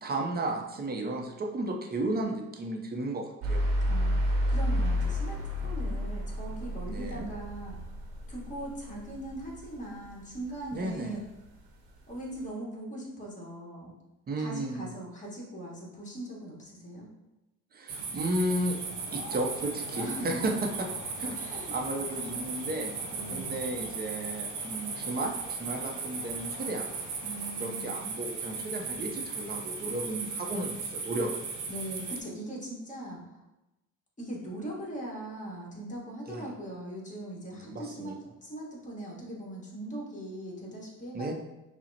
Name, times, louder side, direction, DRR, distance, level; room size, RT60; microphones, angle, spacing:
voice 1, 0.0-3.6 6.9-7.3 10.7-11.2 14.3-14.9 17.7-18.8 19.1-20.5 21.2-21.4 21.7-22.9 23.3-26.9 27.6-31.4 36.3-36.5 37.5-38.1 41.1-41.3, right 1 dB, 25° right, 2 dB, 0.6 m, -33 dB
sound 1, 3.4-9.6, equal, 80° right, 0.9 m, -30 dB
voice 2, 3.9-7.8 8.3-11.2 12.1-13.9 14.4-17.1 19.9-20.3 21.3-21.8 23.1-23.6 27.2-27.9 31.7-33.2 34.2-38.1 38.4-41.3, right 1 dB, 20° left, -3 dB, 1.4 m, -40 dB
sound 2, 17.9-32.2, right 4 dB, 55° right, 0.8 m, -37 dB
sound 3, 18.7-27.8, left 2 dB, 60° left, 0.9 m, -48 dB
5.5 x 2.1 x 2.8 m, 0.98 s
supercardioid pair, 90°, 36 cm